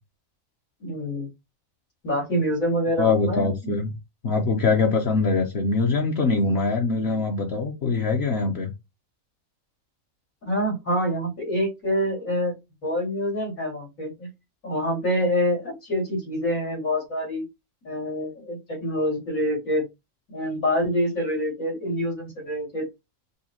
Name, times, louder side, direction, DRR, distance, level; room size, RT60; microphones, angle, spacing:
voice 1, 0.8-1.3 2.0-3.8 10.4-12.5 12.8-14.3 14.6-17.4 17.8-19.8 20.3-22.9, equal, 90° left, 2.8 m, -26 dB
voice 2, 3.0-3.9 4.2-8.7, left 4 dB, 55° left, 0.9 m, -23 dB
5.4 x 2.2 x 2.8 m
omnidirectional pair, 1.4 m